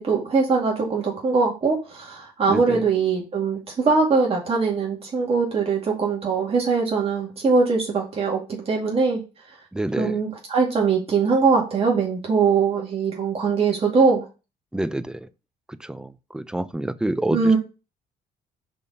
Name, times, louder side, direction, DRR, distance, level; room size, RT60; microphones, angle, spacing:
voice 1, 0.0-9.2 10.0-14.2 17.3-17.6, right 4 dB, 35° right, 2.2 m, -21 dB
voice 2, 2.5-2.8 9.7-10.2 14.7-15.3 15.7-17.6, right 1 dB, 5° right, 0.5 m, -28 dB
5.4 x 4.2 x 5.4 m
cardioid pair, 110°, 17 cm